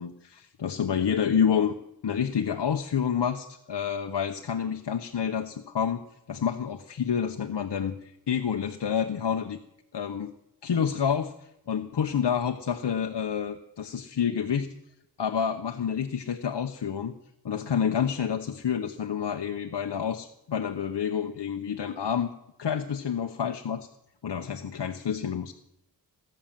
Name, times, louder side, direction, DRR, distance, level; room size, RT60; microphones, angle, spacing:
voice 1, 0.0-1.7 2.0-6.0 6.3-9.6 9.9-10.3 10.6-14.7 15.2-17.1 17.4-22.3 22.6-23.9 24.2-25.5, left 7 dB, 70° left, 5 dB, 1.0 m, -28 dB
19.5 x 8.9 x 7.4 m, 0.83 s
wide cardioid pair, 65°, 43 cm